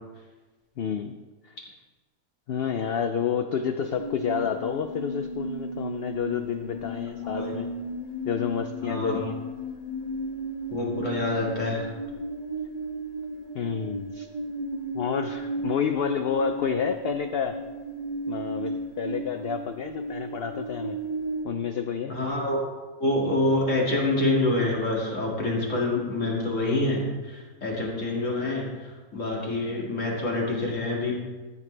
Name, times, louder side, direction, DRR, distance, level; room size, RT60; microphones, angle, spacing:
voice 1, 0.8-1.2 1.4-1.5 2.5-7.7 8.3-9.4 13.5-14.3 14.9-17.6 18.3-21.0 21.4-22.2, left 7 dB, 85° left, 8 dB, 0.5 m, -29 dB
sound 1, 3.8-21.4, right 1 dB, 30° left, 2.0 m, -34 dB
voice 2, 7.2-7.5 8.8-9.2 10.7-11.9 22.1-22.6 23.0-31.1, left 2 dB, 55° left, -3 dB, 2.4 m, -26 dB
13.5 x 7.3 x 3.3 m, 1.3 s
omnidirectional pair, 1.6 m